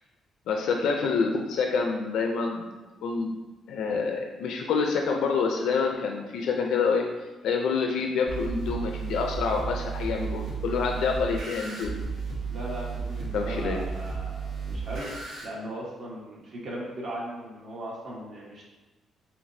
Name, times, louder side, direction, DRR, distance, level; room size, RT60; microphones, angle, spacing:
voice 1, 0.5-2.7 3.0-3.4 3.7-7.0 7.4-12.0 13.3-13.8, left 5 dB, 85° left, 2 dB, 0.4 m, -27 dB
sound 1, 8.3-15.4, right 5 dB, 90° right, 1.0 m, -34 dB
voice 2, 12.5-18.6, right 1 dB, 55° right, -4 dB, 1.2 m, -38 dB
5.0 x 2.9 x 2.6 m, 1.1 s
cardioid pair, 150°, 0 cm